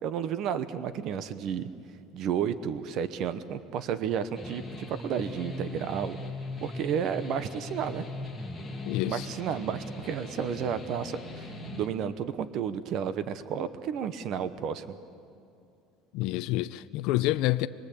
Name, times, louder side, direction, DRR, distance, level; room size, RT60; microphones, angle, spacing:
voice 1, 0.0-1.7 2.1-6.2 6.6-8.1 9.0-14.8, right 8 dB, 45° right, 1.0 m, -32 dB
sound 1, 4.3-11.9, left 2 dB, ahead, 2.3 m, -40 dB
voice 2, 8.9-9.3 16.1-17.7, left 17 dB, 60° left, 0.6 m, -28 dB
27.5 x 22.0 x 8.6 m
cardioid pair, 170°, 0 cm